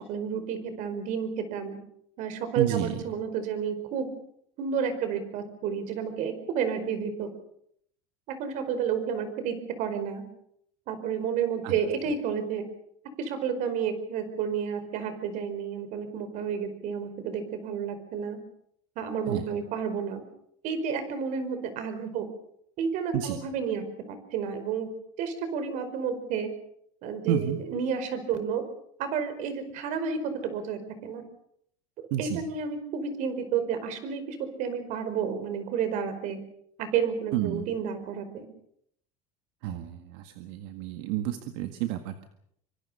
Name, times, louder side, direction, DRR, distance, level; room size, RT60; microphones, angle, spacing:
voice 1, 0.1-1.8 2.2-4.1 4.6-7.3 8.3-10.2 10.9-12.6 13.2-18.4 18.9-20.2 20.6-22.3 22.8-24.9 25.2-26.5 27.0-28.6 29.0-31.2 32.2-36.4 36.8-38.5, right 7 dB, 55° right, 10 dB, 5.0 m, -31 dB
voice 2, 2.5-3.0 11.6-11.8 19.3-19.4 23.1-23.4 27.3-27.6 32.1-32.4 37.3-37.7 39.6-42.3, right 11 dB, 75° right, 7 dB, 1.8 m, -30 dB
25.0 x 25.0 x 5.7 m, 0.70 s
cardioid pair, 140°, 15 cm